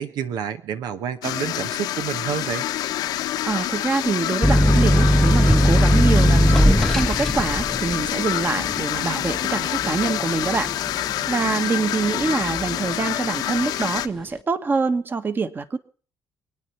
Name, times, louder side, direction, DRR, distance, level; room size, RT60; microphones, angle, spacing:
voice 1, 0.0-2.7, right 8 dB, 80° right, 11 dB, 1.0 m, -29 dB
sound 1, 1.2-14.1, left 13 dB, 85° left, 1.0 m, -27 dB
voice 2, 3.4-10.7 11.0-15.8, right 4 dB, 30° right, 11 dB, 1.4 m, -25 dB
sound 2, 4.4-11.7 12.1-12.8, equal, 5° left, 0.7 m, -19 dB
25.5 x 9.5 x 5.7 m, 0.41 s
cardioid pair, 110°, 7 cm